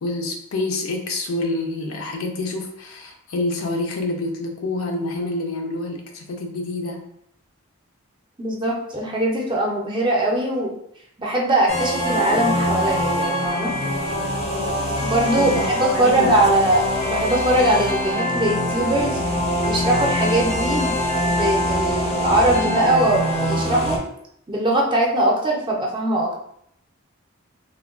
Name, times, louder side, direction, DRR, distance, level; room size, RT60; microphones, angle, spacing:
voice 1, 0.0-7.0 15.4-16.4, left 2 dB, 75° left, 3 dB, 0.5 m, -27 dB
voice 2, 8.4-10.7 11.2-13.7 15.0-19.2 19.7-21.0 21.3-24.0 24.5-26.3, right 1 dB, 20° right, -2 dB, 0.5 m, -21 dB
sound 1, 11.7-24.0, equal, 30° left, 0.5 m, -23 dB
3.3 x 2.2 x 2.3 m, 0.71 s
head